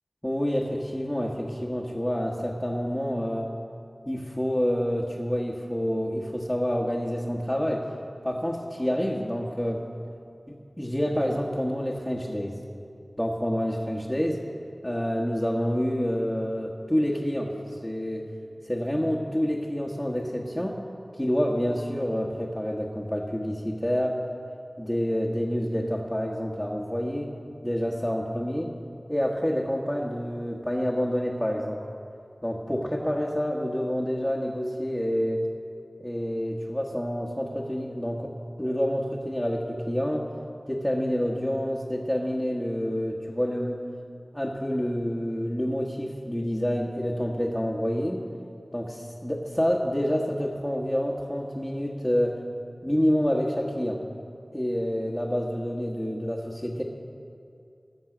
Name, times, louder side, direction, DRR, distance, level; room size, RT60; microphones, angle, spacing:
voice 1, 0.2-3.5 4.1-7.9 8.2-9.9 10.5-12.6 13.2-14.4 14.8-18.3 18.6-20.8 21.1-24.2 24.8-27.3 27.6-28.7 29.1-31.8 32.4-35.5 36.0-38.3 38.6-40.3 40.7-43.8 44.3-48.2 48.7-52.4 52.8-54.0 54.5-56.8, equal, 10° left, -3 dB, 1.3 m, -28 dB
20.5 x 7.4 x 6.1 m, 2.5 s
wide cardioid pair, 50°, 0 cm